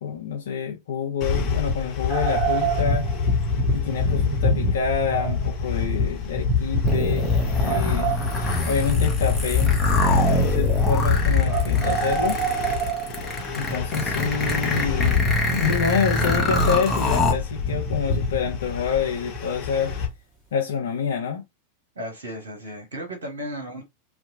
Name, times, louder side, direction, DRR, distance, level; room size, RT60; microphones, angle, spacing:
voice 1, 0.0-3.1 3.7-7.3 7.6-8.2 8.7-9.7 10.2-12.4 13.5-15.2 15.5-19.9 20.5-21.4, left 6 dB, 60° left, 0.5 m, -27 dB
sound 1, 1.2-20.1, left 5 dB, 30° left, 1.1 m, -26 dB
sound 2, 2.1-3.4 5.1-5.5 6.8-6.9 7.6-8.8 11.4-13.6 16.0-16.1, right 8 dB, 5° right, 1.5 m, -28 dB
sound 3, 6.9-17.3, left 1 dB, 10° left, 0.9 m, -24 dB
voice 2, 22.0-23.8, right 1 dB, 60° right, 0.8 m, -34 dB
2.7 x 2.2 x 2.6 m
figure-of-eight pair, 90°, 0 cm